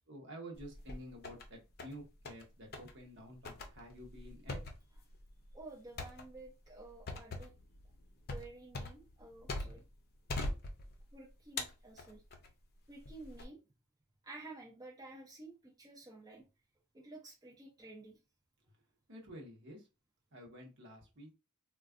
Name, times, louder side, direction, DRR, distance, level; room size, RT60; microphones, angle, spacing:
voice 1, 0.1-4.6 19.1-19.8 20.3-21.3, equal, 55° right, 1 dB, 1.0 m, -50 dB
sound 1, 0.5-1.5 1.8-2.4 2.7-2.9 3.4-9.9 10.3-11.1 11.6-12.5 13.0-13.4, left 2 dB, 45° left, 0.6 m, -42 dB
voice 2, 5.5-7.5 8.3-9.8 11.1-12.2 12.9-13.6 14.2-16.4 16.9-18.2, right 2 dB, 15° right, -2 dB, 0.6 m, -52 dB
3.8 x 2.3 x 2.4 m, 0.28 s
head